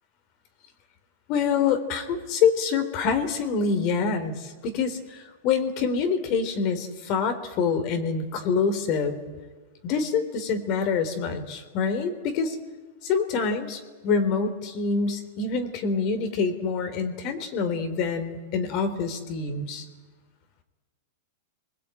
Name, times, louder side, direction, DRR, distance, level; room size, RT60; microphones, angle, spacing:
voice 1, 1.3-9.2 9.8-12.6 13.0-19.8, left 5 dB, 45° left, 8 dB, 3.3 m, -26 dB
26.0 x 20.0 x 9.1 m, 1.3 s
hypercardioid pair, 130°, 0 cm